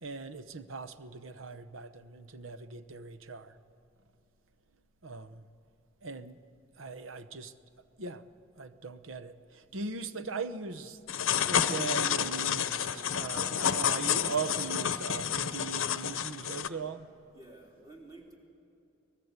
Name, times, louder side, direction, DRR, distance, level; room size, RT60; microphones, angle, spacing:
voice 1, 0.0-3.5 5.0-5.4 6.0-6.4 6.8-7.5 8.0-8.2 8.6-11.0 11.4-17.1, right 4 dB, 80° right, 0.9 m, -39 dB
sound 1, 11.1-16.7, left 8 dB, 75° left, 0.7 m, -30 dB
voice 2, 12.9-14.9 17.3-18.3, right 2 dB, 20° right, 3.3 m, -53 dB
24.0 x 18.0 x 8.2 m
head